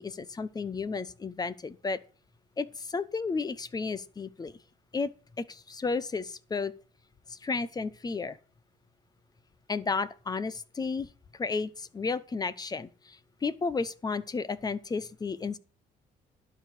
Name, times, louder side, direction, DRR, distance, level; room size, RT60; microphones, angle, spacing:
voice 1, 0.0-2.0 2.6-4.5 4.9-5.1 5.4-6.7 7.3-8.4 9.7-15.6, left 4 dB, 25° left, 0.9 m, -33 dB
12.0 x 5.0 x 7.9 m
cardioid pair, 110°, 17 cm